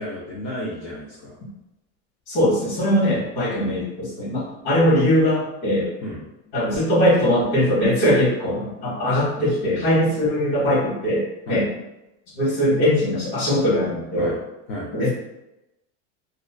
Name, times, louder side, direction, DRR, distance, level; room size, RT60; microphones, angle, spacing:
voice 1, 0.0-1.3 6.0-6.3 11.5-11.6 14.2-14.4 14.7-14.9, left 1 dB, 40° left, -5 dB, 0.4 m, -32 dB
voice 2, 2.3-5.9 6.5-11.7 12.4-14.3 14.9-15.1, equal, 70° left, -7 dB, 1.2 m, -21 dB
2.3 x 2.3 x 2.2 m, 0.92 s
cardioid pair, 175°, 36 cm